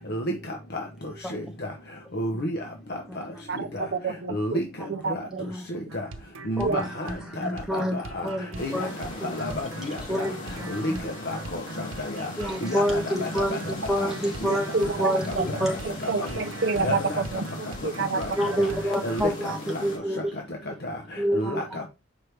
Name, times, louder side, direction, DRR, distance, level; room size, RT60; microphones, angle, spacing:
voice 1, 2.1-2.6 4.3-4.6 5.1-5.2 5.7-6.0 6.5-7.1 7.4-8.3 8.6-10.0 10.7-11.6 12.2-12.3 12.6-13.4 14.0-14.1 14.4-14.6 16.2-16.3 16.8-17.2 18.2-18.3 18.6-18.7 19.0-19.3 20.8-21.0 21.3-21.6, left 1 dB, 50° left, 0.8 m, -30 dB
voice 2, 3.5-4.6 4.9-5.4 6.6-6.8 14.7-15.4 16.1-18.2, right 4 dB, 50° right, 0.5 m, -28 dB
voice 3, 5.3-5.6 6.6-6.9 7.3-8.9 9.2-9.4 10.1-11.0 12.4-15.8 16.7-16.9 18.4-20.3 21.2-21.8, equal, ahead, 1.2 m, -28 dB
sound 1, 5.9-19.6, right 3 dB, 75° right, 0.8 m, -41 dB
sound 2, 8.5-20.0, left 2 dB, 70° left, 3.3 m, -39 dB
6.2 x 4.6 x 3.3 m
head